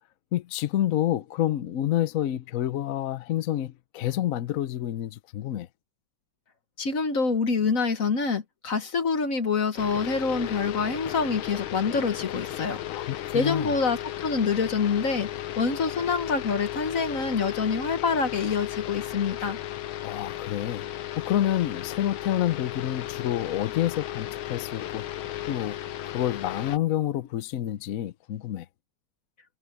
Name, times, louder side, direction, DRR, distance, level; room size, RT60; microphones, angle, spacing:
voice 1, 0.3-5.7 12.9-13.7 20.0-20.8 21.2-25.1 25.5-25.8 26.0-28.7, left 12 dB, 60° left, 0.9 m, -28 dB
voice 2, 6.8-12.8 13.3-15.3 15.6-19.6, left 5 dB, 45° left, 1.4 m, -26 dB
sound 1, 9.8-26.8, left 13 dB, 85° left, 1.7 m, -35 dB
omnidirectional pair, 2.2 m